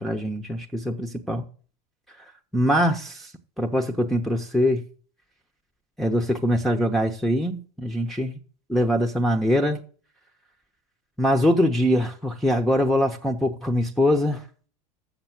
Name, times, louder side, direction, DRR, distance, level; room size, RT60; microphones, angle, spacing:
voice 1, 0.0-1.5 2.5-3.3 3.6-4.8 6.0-8.3 8.7-9.8 11.2-14.4, equal, ahead, 0.9 m, -23 dB
7.2 x 6.8 x 6.0 m
hypercardioid pair, 85°, 19 cm